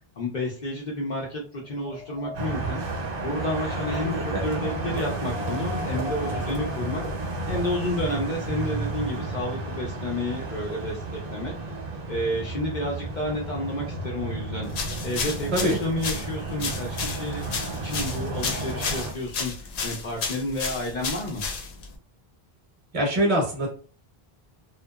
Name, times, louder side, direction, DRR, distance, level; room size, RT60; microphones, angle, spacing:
voice 1, 0.2-2.8 3.2-7.0 7.5-11.5 12.1-14.7 15.0-21.4, left 1 dB, 55° left, -1 dB, 0.6 m, -30 dB
Wind, 1.6-7.6, left 3 dB, ahead, 0.6 m, -41 dB
sound 1, 2.3-19.1, right 2 dB, 60° right, 1.0 m, -32 dB
voice 2, 4.0-4.4 15.5-15.8 22.9-23.7, equal, 40° right, -1 dB, 0.7 m, -24 dB
sound 2, 14.7-21.9, left 5 dB, 85° left, 0.8 m, -32 dB
2.7 x 2.2 x 2.3 m, 0.41 s
omnidirectional pair, 1.0 m